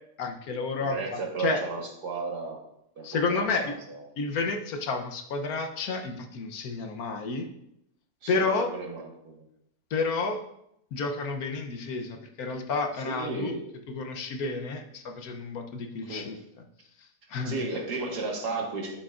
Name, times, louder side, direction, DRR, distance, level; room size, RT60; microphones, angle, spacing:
voice 1, 0.2-1.6 3.0-3.7 4.2-7.5 8.3-8.7 9.9-10.4 10.9-13.5 13.9-16.3 17.3-17.6, left 4 dB, 70° left, 4 dB, 1.3 m, -30 dB
voice 2, 0.8-2.6 3.0-4.0 8.2-9.5 13.0-13.6 16.1-16.3 17.4-19.0, right 3 dB, 90° right, 0 dB, 2.0 m, -34 dB
11.0 x 6.6 x 2.5 m, 0.78 s
omnidirectional pair, 1.7 m